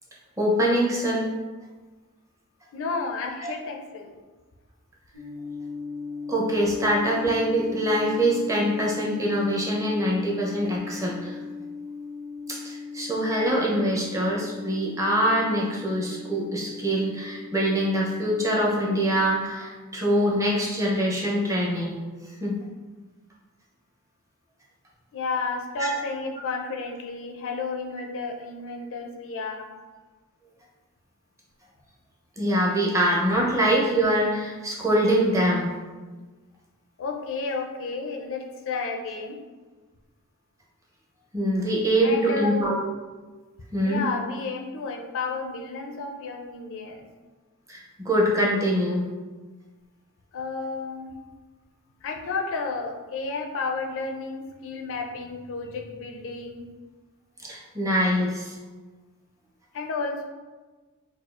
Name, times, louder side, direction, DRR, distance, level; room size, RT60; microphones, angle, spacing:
voice 1, 0.4-1.3 3.4-3.5 6.3-11.4 12.5-22.0 22.4-22.6 32.4-35.7 41.3-43.0 43.7-44.0 47.7-49.1 57.4-58.5, equal, 15° right, -4 dB, 0.6 m, -24 dB
voice 2, 2.7-4.1 25.1-29.7 37.0-39.4 42.0-42.7 43.8-47.1 50.3-51.2 52.0-56.6 59.7-60.2, left 3 dB, 60° left, 3 dB, 0.4 m, -32 dB
sound 1, 5.1-19.3, left 4 dB, 50° right, 1.2 m, -38 dB
4.2 x 2.4 x 2.4 m, 1.3 s
head